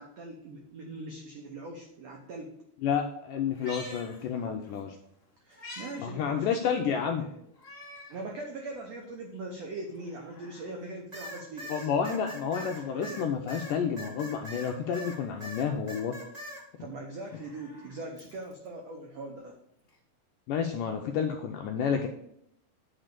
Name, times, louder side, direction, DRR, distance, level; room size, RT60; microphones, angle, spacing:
voice 1, 0.0-2.5 5.4-7.3 8.1-11.9 12.6-13.2 16.8-19.6, right 2 dB, 85° right, 1 dB, 1.4 m, -41 dB
voice 2, 2.8-5.0 6.0-7.3 11.7-16.2 20.5-22.1, left 7 dB, 85° left, 4 dB, 1.9 m, -30 dB
Meow, 3.5-4.8 5.2-6.0 6.4-6.5 7.5-8.2 8.7-8.8 9.8-10.8 12.4-13.3 14.7-15.5 17.0-18.7 19.9-20.0, left 1 dB, 35° left, 1.2 m, -49 dB
sound 1, 11.1-15.2 15.4-16.6, equal, 35° right, 0.6 m, -42 dB
9.2 x 4.1 x 6.6 m, 0.73 s
omnidirectional pair, 4.5 m